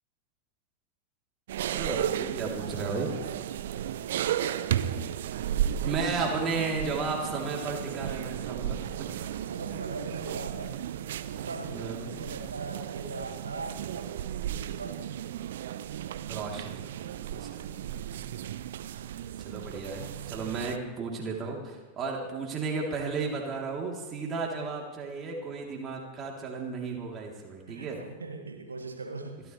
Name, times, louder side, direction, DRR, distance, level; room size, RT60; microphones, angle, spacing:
sound 1, 1.5-20.8, right 10 dB, 60° right, 0.7 m, -34 dB
voice 1, 1.7-3.1 5.8-8.8 9.1-9.3 11.7-12.2 16.3-16.9 17.2-17.6 19.4-28.0, right 4 dB, 25° right, -1 dB, 3.2 m, -34 dB
voice 2, 9.5-10.7 11.2-14.2 14.7-15.1 27.7-29.4, right 3 dB, 75° right, 2 dB, 1.9 m, -40 dB
29.5 x 13.0 x 3.3 m, 1.3 s
figure-of-eight pair, 90°, 0 cm